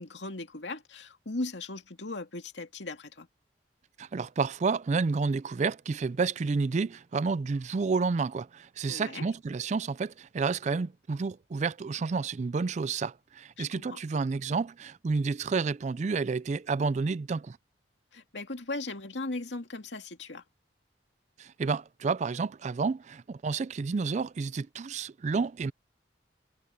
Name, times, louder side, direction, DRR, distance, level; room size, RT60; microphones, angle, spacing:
voice 1, 0.0-3.3 8.9-9.3 13.6-14.0 18.1-20.4, left 2 dB, 85° left, 2.3 m, -38 dB
voice 2, 4.0-17.6 21.4-25.7, right 4 dB, 40° right, 0.4 m, -30 dB
head